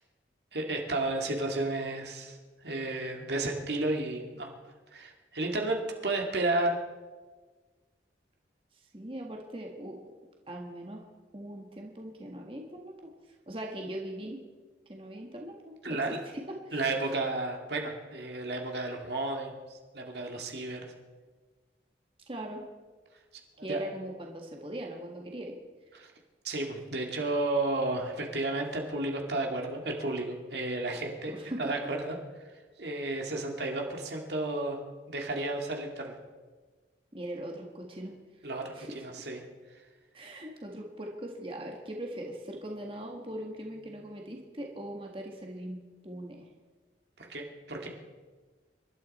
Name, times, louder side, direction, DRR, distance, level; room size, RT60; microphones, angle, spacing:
voice 1, 0.5-2.4 2.6-4.5 4.9-6.8 15.8-16.2 16.7-19.6 19.9-20.9 23.7-23.8 25.9-26.1 26.4-32.2 32.8-34.8 35.1-36.2 38.4-39.4 47.2-47.9, right 2 dB, 70° right, 2 dB, 2.3 m, -32 dB
voice 2, 8.9-10.0 10.5-11.0 11.3-13.1 13.5-14.4 14.9-16.8 22.3-22.6 23.6-25.5 31.3-31.7 37.1-38.1 38.4-39.3 40.1-46.5, right 1 dB, 30° right, 1 dB, 1.7 m, -40 dB
26.5 x 12.5 x 4.3 m, 1.4 s
head